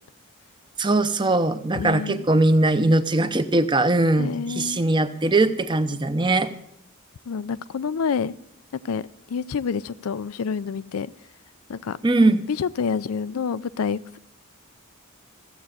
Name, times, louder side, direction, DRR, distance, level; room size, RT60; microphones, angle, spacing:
voice 1, 0.8-6.5 12.0-12.4, right 2 dB, 20° right, 11 dB, 0.7 m, -20 dB
voice 2, 1.7-2.3 4.2-4.9 7.3-8.3 8.8-9.0 9.3-11.1 11.7-12.0 12.5-14.2, left 6 dB, 80° left, 17 dB, 0.4 m, -28 dB
15.0 x 7.6 x 8.2 m, 0.74 s
head